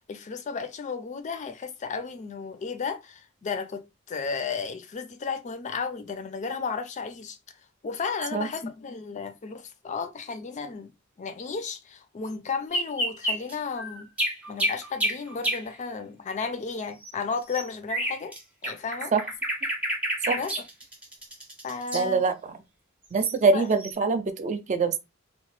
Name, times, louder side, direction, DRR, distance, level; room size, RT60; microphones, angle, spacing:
voice 1, 0.0-7.4 7.8-10.9 11.2-14.1 14.5-18.3 18.6-19.1 20.4-20.5 21.6-22.2 23.5-23.7, left 5 dB, 35° left, 0.4 m, -33 dB
sound 1, 12.7-15.6 17.0-18.4 18.6-22.0 23.3-23.4 23.8-23.9, equal, 5° right, 0.8 m, -29 dB
voice 2, 21.9-22.6 23.1-25.0, right 4 dB, 35° right, 0.4 m, -24 dB
2.9 x 2.1 x 3.0 m
head